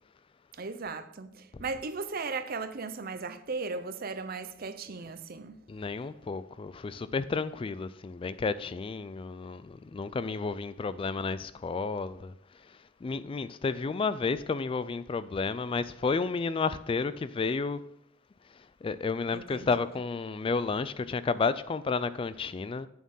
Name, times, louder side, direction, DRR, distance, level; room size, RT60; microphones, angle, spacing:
voice 1, 0.5-5.6 19.3-19.7, right 4 dB, 50° right, 0.7 m, -37 dB
voice 2, 5.7-12.3 13.0-17.8 18.8-22.9, left 4 dB, 25° left, 0.3 m, -31 dB
8.7 x 7.2 x 5.4 m
head